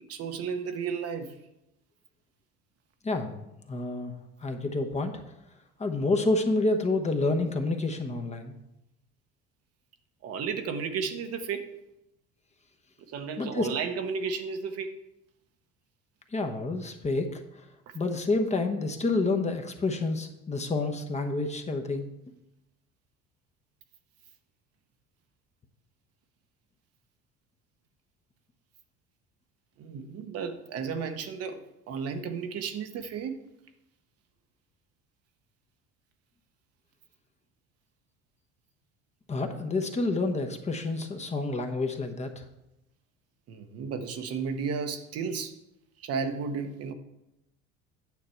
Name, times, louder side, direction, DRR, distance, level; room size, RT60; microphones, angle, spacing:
voice 1, 0.0-1.4 10.2-11.7 13.1-14.9 17.9-18.0 29.8-33.4 43.5-45.5 46.0-46.9, right 5 dB, 55° right, 7 dB, 1.0 m, -33 dB
voice 2, 3.0-3.4 3.7-4.1 4.4-5.2 5.8-8.6 13.4-13.7 16.3-17.4 17.9-22.1 39.3-42.4, left 2 dB, 25° left, 4 dB, 1.1 m, -28 dB
9.3 x 6.6 x 4.5 m, 0.88 s
supercardioid pair, 95°, 29 cm